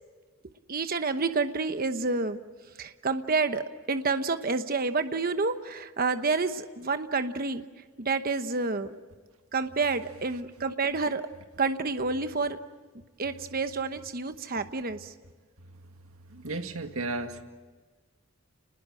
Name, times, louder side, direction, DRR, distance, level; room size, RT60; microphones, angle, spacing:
voice 1, 0.7-2.4 2.8-7.6 8.0-8.9 9.5-11.2 11.6-12.6 13.2-15.1, right 4 dB, 45° right, 9 dB, 1.0 m, -29 dB
voice 2, 16.3-17.4, right 2 dB, 80° right, 6 dB, 1.9 m, -33 dB
29.5 x 20.5 x 7.7 m, 1.4 s
head